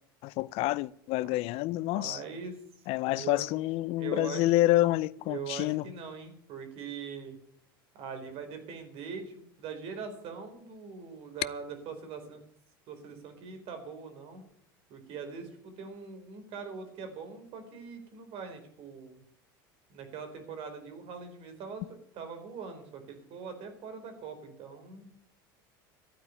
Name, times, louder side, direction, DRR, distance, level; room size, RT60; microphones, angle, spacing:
voice 1, 0.2-2.2 2.9-5.8, left 17 dB, 55° left, 0.5 m, -28 dB
voice 2, 2.0-2.5 3.0-3.4 3.9-4.4 5.2-7.4 7.9-12.4 12.9-14.4 14.9-19.2 19.9-25.1, right 5 dB, 55° right, 4.4 m, -42 dB
12.5 x 8.9 x 9.5 m
hypercardioid pair, 85°, 12 cm